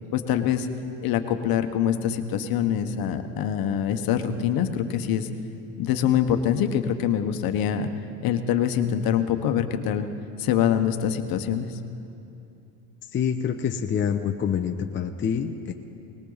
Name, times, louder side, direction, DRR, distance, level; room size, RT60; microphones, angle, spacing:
voice 1, 0.1-0.7 1.0-5.3 5.8-7.9 8.2-10.1 10.4-11.8, left 9 dB, 50° left, 7 dB, 1.3 m, -24 dB
voice 2, 13.1-15.7, left 7 dB, 25° left, 4 dB, 0.8 m, -26 dB
20.5 x 17.5 x 4.1 m, 2.7 s
supercardioid pair, 100°, 44 cm